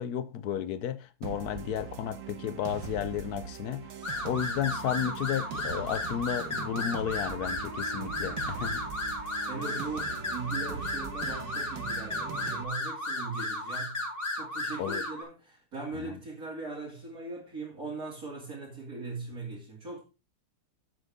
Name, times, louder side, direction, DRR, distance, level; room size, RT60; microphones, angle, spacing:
voice 1, 0.0-3.9 4.2-8.8 14.8-15.0 15.9-16.2, left 10 dB, 65° left, 1.0 m, -33 dB
sound 1, 1.2-12.6, right 7 dB, 70° right, 1.7 m, -41 dB
sound 2, 4.0-15.2, left 2 dB, 20° left, 3.9 m, -34 dB
voice 2, 9.5-14.0 14.3-20.0, right 3 dB, 45° right, 3.3 m, -39 dB
11.5 x 7.8 x 3.6 m
omnidirectional pair, 2.2 m